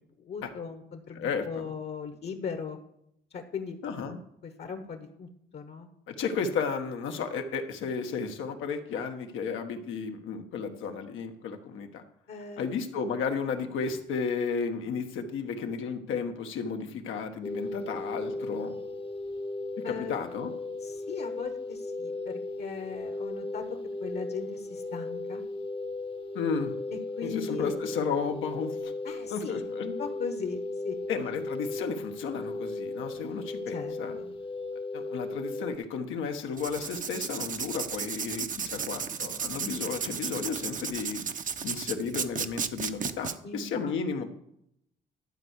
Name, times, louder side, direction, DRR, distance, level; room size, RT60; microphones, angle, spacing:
voice 1, 0.2-2.8 3.3-3.8 4.4-5.9 12.3-12.8 19.8-20.2 20.8-23.6 24.0-25.4 26.9-27.7 29.0-30.6 30.8-31.0 33.7-34.4 39.7-39.8 43.4-44.3, left 5 dB, 60° left, 6 dB, 1.4 m, -38 dB
voice 2, 1.1-1.7 3.8-4.2 6.1-12.0 12.6-18.8 19.8-20.5 26.3-26.7 27.2-28.9 29.3-29.8 31.1-34.2 34.9-41.3 41.6-44.3, left 5 dB, 85° left, 5 dB, 1.4 m, -33 dB
sound 1, 17.4-35.8, left 2 dB, 25° left, 0.9 m, -36 dB
Writing, 36.5-43.3, right 6 dB, 40° right, 0.8 m, -34 dB
12.0 x 4.6 x 8.2 m, 0.75 s
cardioid pair, 90°, 20 cm